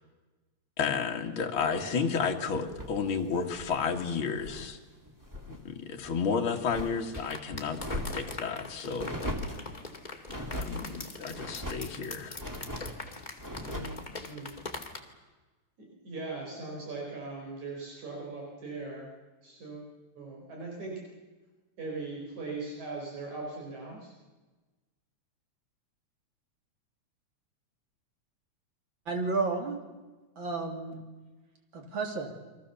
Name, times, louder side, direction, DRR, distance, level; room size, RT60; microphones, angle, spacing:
voice 1, 0.8-4.8 5.5-9.1 10.5-12.4, left 6 dB, 45° left, 2 dB, 2.6 m, -32 dB
sound 1, 2.6-4.7 5.0-5.6 6.0-7.3 7.7-8.4 9.0-9.7 10.3-10.8 11.3-11.9 12.3-13.0 13.4-14.0, equal, 5° right, 2.5 m, -39 dB
sound 2, 7.1-15.0, left 3 dB, 15° left, 2.0 m, -42 dB
voice 2, 14.2-14.5 15.8-19.1 19.4-19.8 20.2-21.0 21.8-24.1, right 3 dB, 75° right, -2 dB, 6.0 m, -39 dB
voice 3, 29.1-29.8 30.4-31.0 31.7-32.3, right 4 dB, 40° right, 3 dB, 3.6 m, -31 dB
29.5 x 23.5 x 7.1 m, 1.2 s
omnidirectional pair, 3.4 m